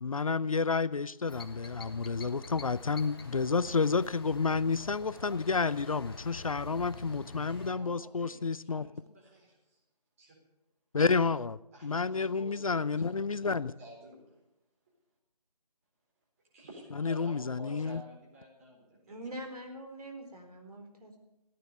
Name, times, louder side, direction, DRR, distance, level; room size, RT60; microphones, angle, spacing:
voice 1, 0.0-8.9 10.9-13.7 17.0-18.0, left 4 dB, 60° left, 18 dB, 0.5 m, -30 dB
sound 1, 1.3-7.7, left 3 dB, 35° left, 1.3 m, -46 dB
voice 2, 7.5-9.6 10.2-10.4 11.7-13.0 13.3-14.4 16.5-19.0, equal, 20° right, -2 dB, 3.9 m, -51 dB
voice 3, 19.1-21.2, right 1 dB, 65° right, 3 dB, 4.3 m, -44 dB
15.0 x 9.4 x 9.3 m, 0.90 s
figure-of-eight pair, 165°, 21 cm